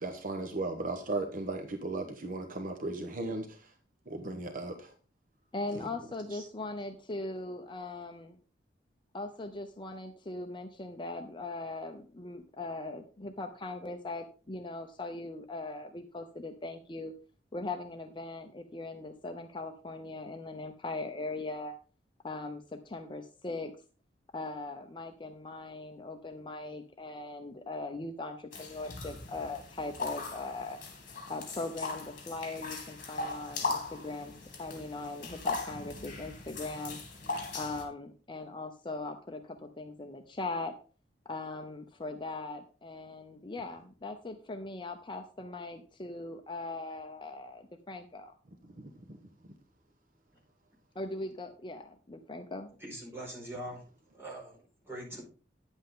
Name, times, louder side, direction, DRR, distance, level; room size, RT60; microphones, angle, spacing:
voice 1, 0.0-3.7 4.1-4.9 5.7-5.8 6.3-6.4 48.8-49.2, right 2 dB, 50° right, 4 dB, 1.1 m, -36 dB
voice 2, 5.5-8.4 9.1-17.1 17.5-21.7 22.2-23.7 24.3-30.8 31.3-37.0 37.5-40.7 41.3-48.3 50.9-52.7, left 2 dB, 25° left, 6 dB, 0.7 m, -40 dB
sound 1, 28.5-37.9, left 3 dB, 50° left, 2.7 m, -39 dB
voice 3, 52.8-53.9 54.1-55.3, right 1 dB, 15° right, -4 dB, 4.7 m, -43 dB
10.0 x 8.1 x 3.7 m, 0.35 s
head